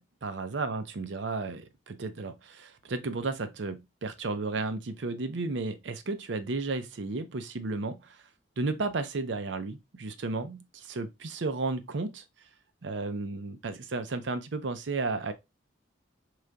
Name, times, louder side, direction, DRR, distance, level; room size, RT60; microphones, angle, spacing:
voice 1, 0.0-8.2 8.6-12.2 12.8-15.3, right 3 dB, 65° right, 0.6 m, -33 dB
4.9 x 3.8 x 2.2 m
head